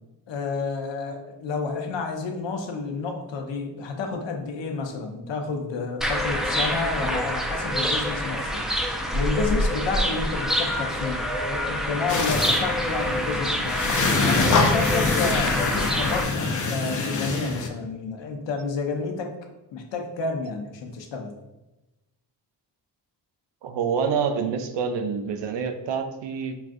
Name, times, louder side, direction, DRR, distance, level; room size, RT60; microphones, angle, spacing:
voice 1, 0.3-8.6 9.1-13.8 14.2-19.3 19.7-21.3, left 4 dB, 75° left, 3 dB, 0.7 m, -30 dB
sound 1, 6.0-16.2, equal, ahead, 0.4 m, -26 dB
sound 2, 12.1-17.7, left 3 dB, 45° left, 0.7 m, -25 dB
voice 2, 23.6-26.5, right 6 dB, 75° right, 7 dB, 0.6 m, -27 dB
5.0 x 2.4 x 2.5 m, 1.0 s
cardioid pair, 55°, 44 cm